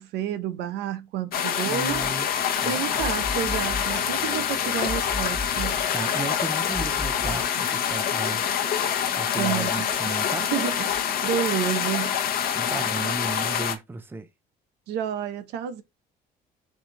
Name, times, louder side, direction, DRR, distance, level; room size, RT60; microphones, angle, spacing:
voice 1, 0.0-2.0 2.6-5.8 9.3-9.8 10.4-12.5 14.9-15.8, right 10 dB, 85° right, 0.7 m, -30 dB
sound 1, 1.3-13.8, left 8 dB, 60° left, 1.0 m, -26 dB
voice 2, 1.6-3.0 5.9-8.4 9.1-10.5 12.5-14.3, right 3 dB, 15° right, 0.6 m, -34 dB
sound 2, 1.9-7.5, left 2 dB, 5° left, 1.4 m, -37 dB
4.9 x 2.7 x 3.8 m
cardioid pair, 110°, 17 cm